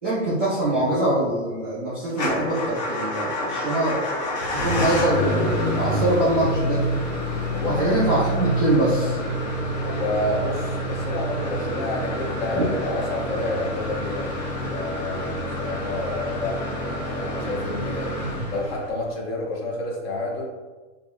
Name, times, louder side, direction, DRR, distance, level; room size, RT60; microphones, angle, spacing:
voice 1, 0.0-4.0 4.5-6.8 7.6-9.2 12.5-12.6, right 1 dB, 10° right, -15 dB, 0.3 m, -23 dB
Motor vehicle (road) / Engine starting / Idling, 2.1-19.1, equal, 35° left, 0.6 m, -27 dB
voice 2, 7.5-8.0 9.8-14.4 14.7-18.2 18.5-20.5, left 2 dB, 50° left, -3 dB, 1.3 m, -29 dB
6.7 x 2.7 x 2.4 m, 1.3 s
supercardioid pair, 180°, 39 cm